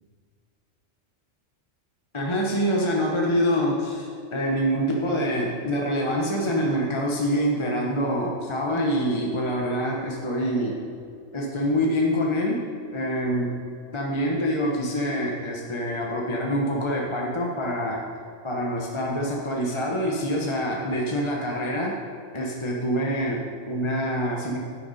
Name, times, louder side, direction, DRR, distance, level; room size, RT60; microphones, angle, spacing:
voice 1, 2.1-10.8 11.3-12.7 12.9-13.6 13.9-18.0 18.4-21.9 22.3-24.6, equal, 25° left, -2 dB, 1.0 m, -25 dB
10.5 x 10.0 x 4.2 m, 2.4 s
omnidirectional pair, 1.4 m